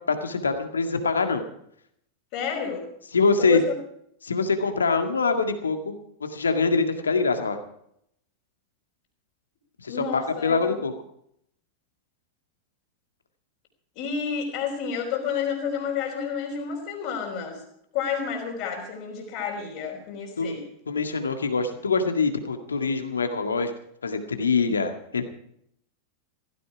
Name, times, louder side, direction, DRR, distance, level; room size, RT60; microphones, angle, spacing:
voice 1, 0.1-1.4 3.1-3.6 4.2-5.9 6.3-7.6 9.8-10.9 20.4-20.6 20.9-23.7 24.0-25.2, left 4 dB, 75° left, 6 dB, 1.9 m, -24 dB
voice 2, 2.3-2.9 3.4-3.7 9.9-10.8 14.0-17.6 17.9-20.6, left 6 dB, 50° left, -5 dB, 4.0 m, -30 dB
16.0 x 15.5 x 4.9 m, 0.73 s
figure-of-eight pair, 90°, 0 cm